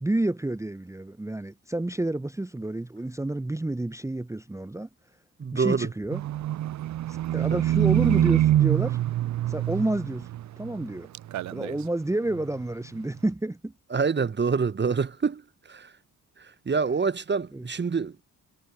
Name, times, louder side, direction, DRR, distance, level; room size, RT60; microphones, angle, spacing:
voice 1, 0.0-4.9 5.5-6.2 7.1-9.0 9.5-10.3 10.6-11.1 11.5-13.7 17.5-17.7, right 1 dB, 5° right, 0.8 m, -29 dB
voice 2, 5.4-5.9 7.3-7.6 13.9-15.9 16.4-18.2, right 5 dB, 25° right, 1.3 m, -27 dB
Livestock farm animals working animals, 6.1-10.9 11.1-11.9 12.3-12.4, right 13 dB, 40° right, 0.7 m, -25 dB
figure-of-eight pair, 40°, 46 cm